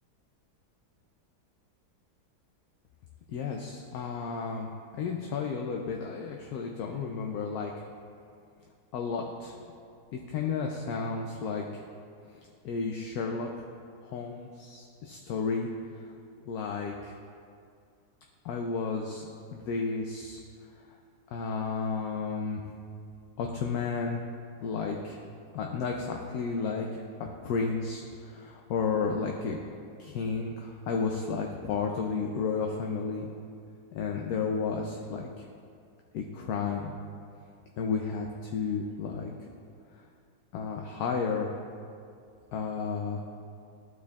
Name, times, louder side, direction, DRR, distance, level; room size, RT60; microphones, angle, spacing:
voice 1, 3.3-4.7 4.9-7.7 8.9-9.6 10.1-11.8 12.6-13.5 14.0-15.7 15.9-16.1 16.5-17.2 18.4-19.3 19.5-20.4 21.3-22.7 23.4-24.2 24.6-25.2 25.5-27.0 27.4-29.6 30.0-33.3 33.9-35.5 36.1-36.9 37.8-39.3 40.5-41.6 42.5-43.4, left 5 dB, 75° left, 1 dB, 1.0 m, -32 dB
13.5 x 4.7 x 2.3 m, 2.4 s
omnidirectional pair, 1.7 m